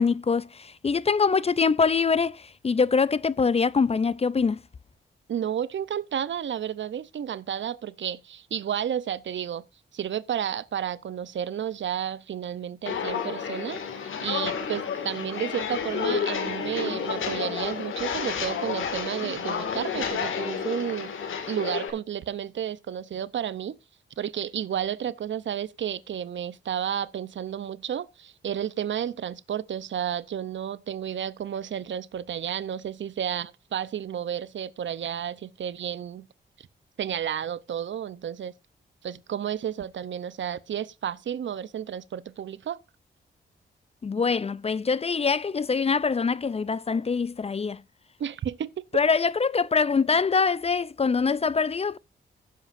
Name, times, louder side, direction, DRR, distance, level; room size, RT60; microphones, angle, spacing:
voice 1, 0.0-4.6 44.0-47.8 48.9-52.0, left 5 dB, 30° left, 0.4 m, -24 dB
voice 2, 5.3-9.6 9.9-21.1 21.5-23.8 24.2-36.3 36.6-36.7 37.0-38.5 39.0-42.8 48.2-48.7, right 9 dB, 70° right, 0.7 m, -32 dB
Walk footsteps, 12.8-21.9, left 6 dB, 85° left, 2.1 m, -30 dB
15.5 x 7.4 x 2.5 m
cardioid pair, 65°, 20 cm